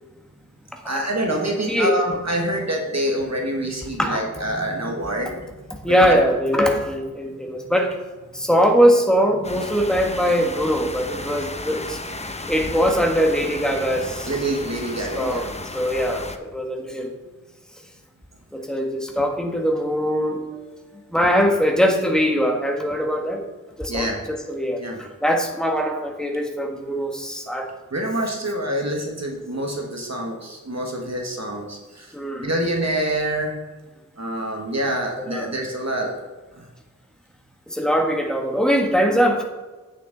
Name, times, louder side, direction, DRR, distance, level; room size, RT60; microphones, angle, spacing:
voice 1, 0.8-5.5 5.9-6.2 11.7-11.8 14.2-15.4 23.9-24.2 24.8-25.0 27.9-33.5 34.2-36.2 36.6-36.7, right 1 dB, 50° right, 1 dB, 1.4 m, -26 dB
voice 2, 1.7-2.0 4.0-4.2 5.8-7.9 8.3-12.0 12.5-14.3 15.1-17.1 18.5-20.7 21.1-23.4 23.8-27.7 32.1-32.5 35.2-35.5 37.7-39.4, equal, ahead, 1 dB, 1.5 m, -21 dB
sound 1, 9.4-16.4, left 2 dB, 20° left, 0.7 m, -34 dB
8.5 x 7.1 x 4.0 m, 1.2 s
wide cardioid pair, 55°, 34 cm